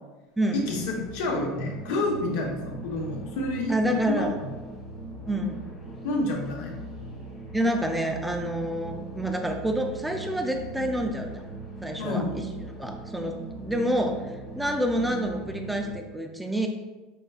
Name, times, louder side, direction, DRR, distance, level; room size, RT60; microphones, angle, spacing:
voice 1, 0.5-4.3 6.0-6.8 12.0-12.3, left 2 dB, 65° left, 0 dB, 1.0 m, -29 dB
sound 1, 0.5-15.9, right 2 dB, 15° left, 1.1 m, -40 dB
voice 2, 3.7-4.4 5.3-5.6 7.5-11.4 11.8-12.2 12.8-14.2 14.6-16.7, right 1 dB, 5° right, 3 dB, 0.4 m, -28 dB
5.9 x 3.7 x 2.3 m, 1.2 s
cardioid pair, 175°, 0 cm